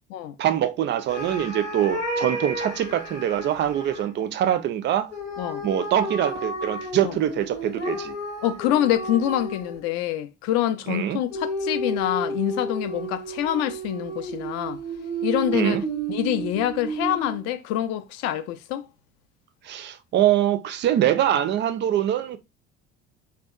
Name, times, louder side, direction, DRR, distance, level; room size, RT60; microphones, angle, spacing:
voice 1, 0.4-5.1 5.6-8.1 10.9-11.2 15.5-15.8 19.6-22.4, right 11 dB, 35° right, 0.4 m, -24 dB
sound 1, 1.1-4.1 5.1-9.9 11.3-17.4, right 2 dB, 90° left, 1.0 m, -32 dB
voice 2, 8.4-14.8 15.2-15.8 16.1-18.9, left 12 dB, 50° left, 0.4 m, -26 dB
2.7 x 2.2 x 2.3 m
figure-of-eight pair, 60°, 34 cm